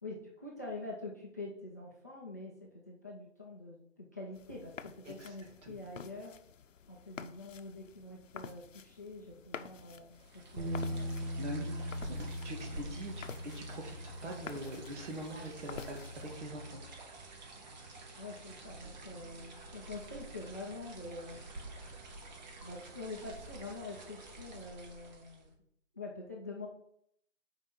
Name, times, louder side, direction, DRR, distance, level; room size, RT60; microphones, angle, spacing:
voice 1, 0.0-6.3 6.9-11.3 12.7-13.0 18.2-21.4 22.6-25.5 25.9-26.7, left 2 dB, 15° left, -3 dB, 0.4 m, -46 dB
sound 1, 4.3-16.4, left 7 dB, 90° left, 0.6 m, -50 dB
sound 2, 10.2-25.6, right 2 dB, 35° right, 1.2 m, -50 dB
sound 3, 10.6-16.8, equal, 85° right, 2.1 m, -41 dB
voice 2, 11.4-12.2 12.4-13.1 13.4-16.8, right 1 dB, 65° right, 1 dB, 2.2 m, -43 dB
5.7 x 4.6 x 5.5 m, 0.70 s
hypercardioid pair, 155°, 37 cm